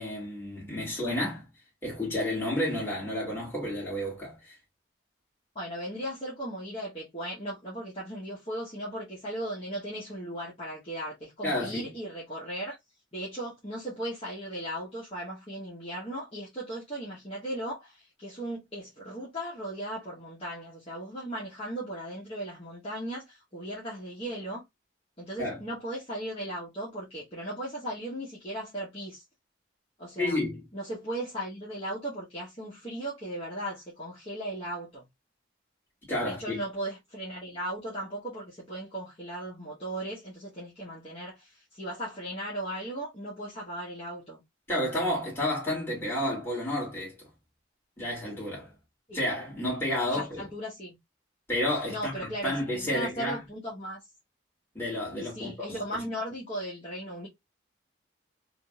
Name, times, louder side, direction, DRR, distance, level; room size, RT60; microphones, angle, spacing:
voice 1, 0.0-1.4 1.8-4.5 11.4-11.8 25.4-25.6 30.2-30.6 36.1-36.6 44.7-47.2 48.0-48.7 49.1-50.5 51.5-53.4 54.7-55.8, left 1 dB, 10° left, 2.2 m, -31 dB
voice 2, 5.5-12.8 13.1-24.6 25.2-29.2 30.0-30.4 30.7-35.1 36.2-44.4 49.1-49.2 50.1-51.0 51.9-54.0 55.2-57.3, right 1 dB, 30° left, 1.2 m, -37 dB
3.8 x 2.7 x 2.4 m
head